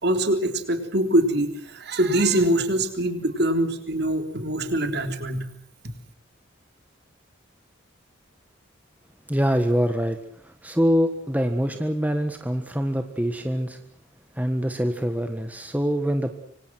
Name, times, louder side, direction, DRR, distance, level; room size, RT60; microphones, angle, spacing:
voice 1, 0.0-5.5, right 1 dB, 55° right, 7 dB, 3.7 m, -23 dB
voice 2, 9.3-10.2 10.4-13.8 14.4-16.3, equal, 10° right, 6 dB, 1.6 m, -24 dB
25.5 x 25.5 x 6.3 m, 0.64 s
head